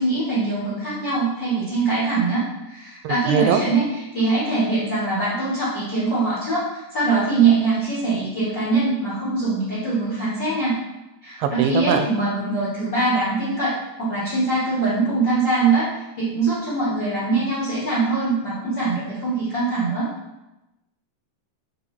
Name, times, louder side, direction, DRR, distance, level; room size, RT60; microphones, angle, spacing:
voice 1, 0.0-2.4 2.7-10.8 11.2-13.7 14.0-15.9 16.2-20.1, right 3 dB, 55° left, -9 dB, 1.1 m, -22 dB
voice 2, 3.0-3.6 11.4-12.1, right 8 dB, 90° right, 7 dB, 2.4 m, -21 dB
7.8 x 2.8 x 4.7 m, 0.95 s
omnidirectional pair, 4.1 m